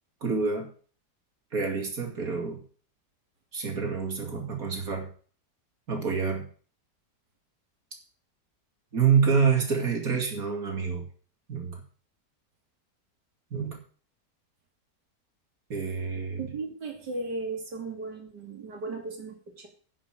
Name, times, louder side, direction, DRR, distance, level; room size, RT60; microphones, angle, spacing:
voice 1, 0.2-0.7 1.5-2.6 3.5-5.1 5.9-6.5 8.9-11.0 11.5-11.8 13.5-13.8 15.7-16.5, right 6 dB, 55° right, 3 dB, 3.0 m, -27 dB
voice 2, 16.4-19.7, right 3 dB, 80° right, 2 dB, 3.3 m, -36 dB
10.5 x 7.1 x 6.3 m, 0.42 s
omnidirectional pair, 1.8 m